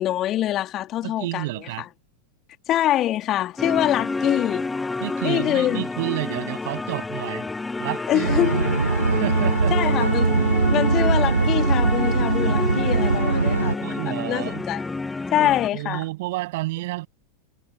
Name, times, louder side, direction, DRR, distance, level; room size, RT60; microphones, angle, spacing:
voice 1, 0.0-1.4 2.7-4.7 5.2-5.8 8.1-8.7 9.7-10.3 10.7-14.8 15.3-16.0, left 13 dB, 30° left, 2.6 m, -24 dB
voice 2, 1.0-1.8 5.0-7.5 7.8-8.7 9.2-10.0 13.8-14.6 15.4-17.1, right 19 dB, 50° right, 7.6 m, -30 dB
sound 1, 3.6-15.7, left 3 dB, 10° left, 1.6 m, -29 dB
sound 2, 8.2-13.7, right 3 dB, 80° right, 1.4 m, -21 dB
figure-of-eight pair, 90°, 0 cm